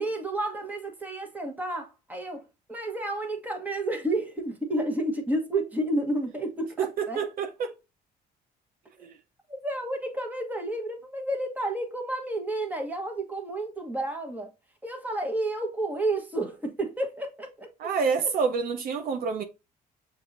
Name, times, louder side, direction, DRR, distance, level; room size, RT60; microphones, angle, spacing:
voice 1, 0.0-7.2 9.0-9.1 9.5-14.5 14.8-17.9, right 1 dB, 10° right, 1.2 m, -31 dB
voice 2, 7.0-7.7 9.0-9.1 17.8-19.4, right 5 dB, 60° right, 0.7 m, -28 dB
6.9 x 2.7 x 2.5 m
cardioid pair, 110°, 17 cm